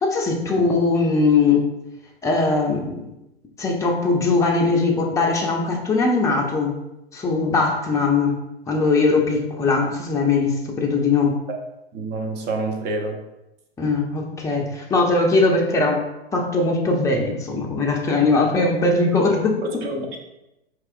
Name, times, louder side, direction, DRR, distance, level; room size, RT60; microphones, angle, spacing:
voice 1, 0.0-1.7 2.2-3.0 3.6-6.8 7.1-8.4 8.7-11.4 13.8-16.0 16.3-19.8, left 3 dB, 10° left, 0 dB, 0.5 m, -20 dB
voice 2, 11.9-13.2 18.2-18.3 19.6-20.2, right 2 dB, 30° right, 3 dB, 0.7 m, -28 dB
4.5 x 2.9 x 2.5 m, 0.91 s
hypercardioid pair, 110°, 32 cm